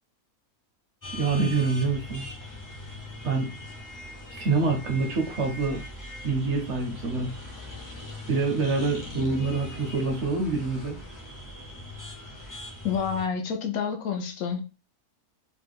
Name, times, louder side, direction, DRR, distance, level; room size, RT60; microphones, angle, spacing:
sound 1, 1.0-13.3, left 1 dB, 25° left, 0.4 m, -41 dB
voice 1, 1.1-2.3 3.2-3.5 4.4-5.8 6.2-7.3 8.3-11.0, right 3 dB, 60° right, 0.8 m, -26 dB
voice 2, 12.8-14.6, left 6 dB, 75° left, 1.1 m, -28 dB
3.1 x 2.1 x 3.4 m
omnidirectional pair, 1.6 m